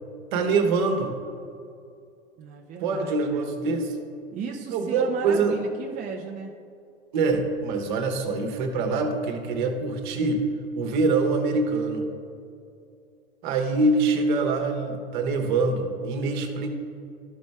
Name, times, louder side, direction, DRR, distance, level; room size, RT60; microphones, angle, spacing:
voice 1, 0.3-1.2 2.8-3.9 4.7-5.6 7.1-10.4 10.7-12.1 13.4-16.7, right 3 dB, 55° right, 4 dB, 1.2 m, -24 dB
voice 2, 2.4-3.5 4.3-6.5, right 6 dB, 25° right, 1 dB, 0.7 m, -36 dB
13.0 x 5.2 x 3.4 m, 2.4 s
figure-of-eight pair, 85°, 29 cm